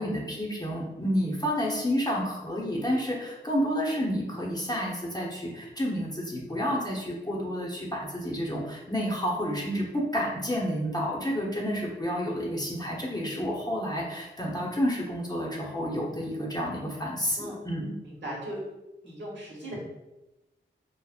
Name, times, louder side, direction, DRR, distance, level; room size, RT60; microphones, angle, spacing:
voice 1, 0.0-17.9, equal, 20° left, -3 dB, 0.8 m, -30 dB
voice 2, 18.0-18.6 19.0-19.8, right 1 dB, 70° right, -5 dB, 1.1 m, -38 dB
3.5 x 2.0 x 2.4 m, 0.98 s
cardioid pair, 45°, 20 cm